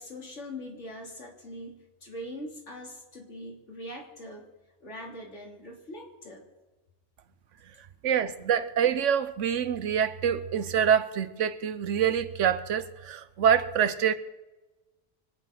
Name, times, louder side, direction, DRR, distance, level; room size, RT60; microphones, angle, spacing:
voice 1, 0.0-4.5 4.8-6.4, left 1 dB, 75° left, 0 dB, 3.4 m, -42 dB
voice 2, 8.0-14.1, right 8 dB, 80° right, 13 dB, 1.2 m, -26 dB
25.0 x 9.4 x 6.0 m, 1.1 s
omnidirectional pair, 1.2 m